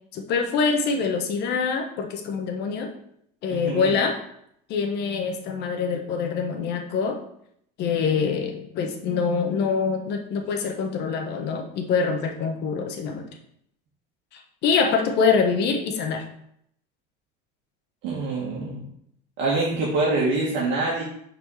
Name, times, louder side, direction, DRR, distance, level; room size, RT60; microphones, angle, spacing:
voice 1, 0.1-2.9 3.4-4.2 4.7-7.2 7.8-13.3 14.3-16.2, left 5 dB, 55° left, 5 dB, 1.0 m, -25 dB
voice 2, 3.5-4.0 18.0-18.8 19.4-21.0, right 3 dB, 60° right, -5 dB, 1.7 m, -25 dB
4.6 x 4.3 x 5.6 m, 0.71 s
cardioid pair, 145°, 21 cm